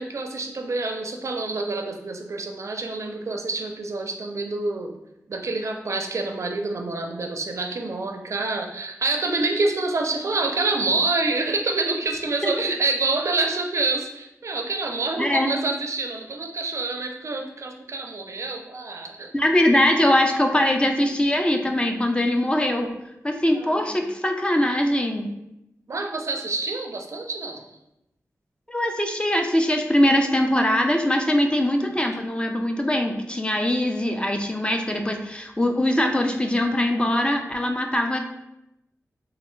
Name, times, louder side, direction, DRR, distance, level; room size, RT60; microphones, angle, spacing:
voice 1, 0.0-4.9 5.3-19.3 23.5-24.0 25.9-27.6, right 3 dB, 60° right, 3 dB, 0.4 m, -27 dB
voice 2, 15.2-15.5 19.3-22.9 23.2-25.3 28.7-38.2, left 1 dB, 15° left, 4 dB, 0.4 m, -22 dB
3.2 x 2.3 x 3.1 m, 0.86 s
wide cardioid pair, 70°, 6 cm